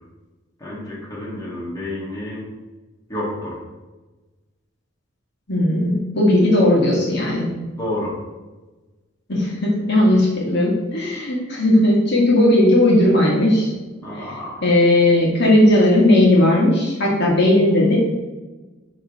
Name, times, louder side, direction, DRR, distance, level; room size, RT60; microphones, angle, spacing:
voice 1, 0.6-2.4 3.1-3.6 7.8-8.2 14.0-14.6, left 1 dB, 15° left, -6 dB, 1.5 m, -29 dB
voice 2, 5.5-7.5 9.3-13.7 14.1-14.3 14.6-18.0, left 1 dB, 60° left, -3 dB, 1.7 m, -16 dB
9.0 x 3.2 x 3.5 m, 1.2 s
head